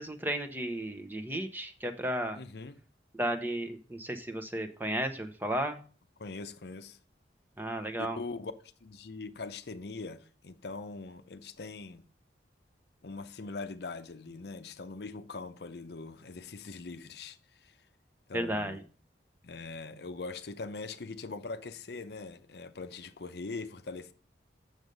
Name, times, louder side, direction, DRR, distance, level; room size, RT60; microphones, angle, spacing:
voice 1, 0.0-2.4 3.1-5.8 7.6-8.2 18.3-18.8, right 1 dB, 10° right, 0.7 m, -34 dB
voice 2, 2.3-2.8 6.2-7.0 8.0-8.5 8.8-12.0 13.0-17.8 18.3-18.8 19.4-24.1, left 3 dB, 65° left, 0.6 m, -42 dB
7.9 x 6.6 x 5.2 m
head